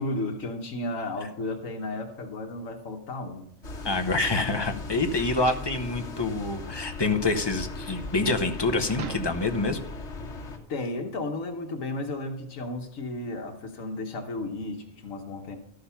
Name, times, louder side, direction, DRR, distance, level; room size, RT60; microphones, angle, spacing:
voice 1, 0.0-3.5 10.7-15.6, left 2 dB, 80° left, 3 dB, 1.5 m, -33 dB
sound 1, 3.6-10.6, left 3 dB, 60° left, 2.0 m, -38 dB
voice 2, 3.8-9.8, left 3 dB, 25° left, 5 dB, 0.8 m, -26 dB
sound 2, 3.8-9.8, right 8 dB, 80° right, 1.2 m, -44 dB
13.0 x 6.6 x 5.6 m, 0.73 s
omnidirectional pair, 1.4 m